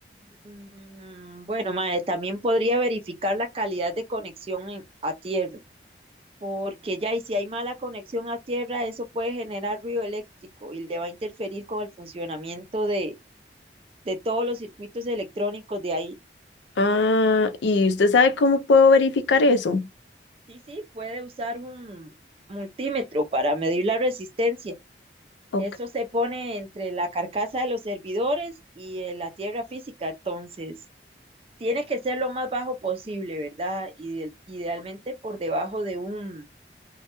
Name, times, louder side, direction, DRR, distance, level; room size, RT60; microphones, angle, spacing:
voice 1, 0.4-5.6 6.4-10.2 10.6-13.2 14.1-16.2 20.5-22.1 22.5-24.7 25.6-30.7 31.6-36.5, equal, 30° right, 0.4 m, -29 dB
voice 2, 16.8-19.8 25.5-25.6, left 3 dB, 90° left, 0.4 m, -19 dB
2.2 x 2.0 x 2.8 m
head